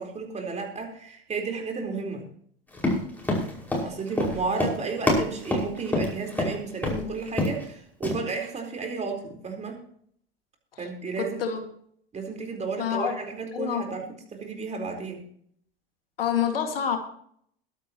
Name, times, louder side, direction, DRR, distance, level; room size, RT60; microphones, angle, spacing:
voice 1, 0.0-2.2 3.8-9.8 10.8-11.4 12.1-14.0 14.3-15.3, right 4 dB, 25° right, 2 dB, 4.3 m, -33 dB
Run, 2.7-6.5 6.8-7.0 7.3-7.7 8.0-8.1, left 1 dB, 5° left, 5.5 m, -26 dB
voice 2, 11.2-11.6 12.8-13.2 13.5-13.8 16.2-17.0, left 8 dB, 70° left, 5 dB, 2.2 m, -27 dB
21.5 x 10.5 x 3.1 m, 0.63 s
figure-of-eight pair, 80°, 30 cm